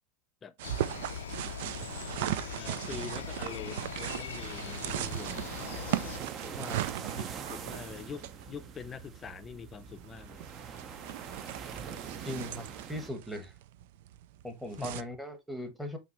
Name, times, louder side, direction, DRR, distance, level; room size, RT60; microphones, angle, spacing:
sound 1, 0.6-6.2, left 9 dB, 85° left, 0.4 m, -41 dB
sound 2, 0.6-15.0, right 14 dB, 70° right, 0.4 m, -38 dB
voice 1, 2.5-5.5 6.4-6.7 7.1-10.5 14.8-15.0, left 7 dB, 25° left, 0.5 m, -45 dB
sound 3, 3.2-13.1, right 6 dB, 30° right, 0.7 m, -45 dB
voice 2, 6.6-7.1 12.2-13.5 14.4-16.0, left 1 dB, ahead, 1.2 m, -39 dB
5.7 x 2.8 x 3.0 m
supercardioid pair, 120°, 0 cm